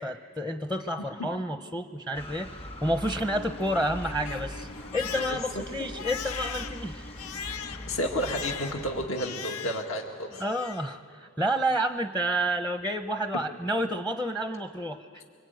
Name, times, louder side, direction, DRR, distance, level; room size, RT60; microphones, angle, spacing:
voice 1, 0.0-4.7 4.9-7.0 10.4-15.2, right 1 dB, 5° left, 7 dB, 0.7 m, -30 dB
sound 1, 2.1-9.1, left 1 dB, 25° left, 1.5 m, -41 dB
Crying sobbing, 3.2-10.0 10.3-11.0, left 6 dB, 85° left, 0.8 m, -40 dB
voice 2, 7.9-10.3, equal, 65° left, 2 dB, 1.9 m, -31 dB
26.0 x 24.5 x 9.2 m, 2.1 s
head